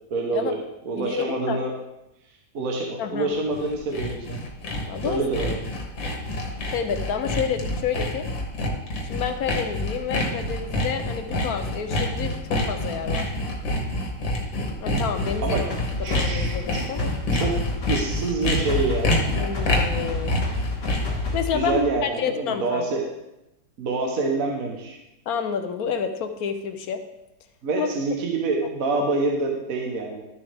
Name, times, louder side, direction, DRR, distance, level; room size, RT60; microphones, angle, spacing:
voice 1, 0.1-0.6 0.9-1.7 2.5-4.4 5.0-5.6 15.4-15.6 16.0-16.9 17.3-17.6 17.9-19.4 21.5-23.0 23.8-25.0 27.6-30.2, right 3 dB, 55° right, 1 dB, 1.4 m, -26 dB
voice 2, 1.0-1.6 3.0-3.3 4.9-5.2 5.5-5.6 6.7-8.3 9.0-13.3 14.8-15.6 16.0-17.1 19.3-20.4 21.3-22.8 25.3-27.0 27.7-27.9, left 7 dB, 65° left, 8 dB, 1.0 m, -29 dB
Sawing, 3.4-21.2, left 1 dB, 90° left, 2.1 m, -27 dB
sound 1, 15.2-22.0, left 2 dB, 35° left, 1.7 m, -30 dB
12.5 x 6.9 x 3.4 m, 0.91 s
omnidirectional pair, 2.0 m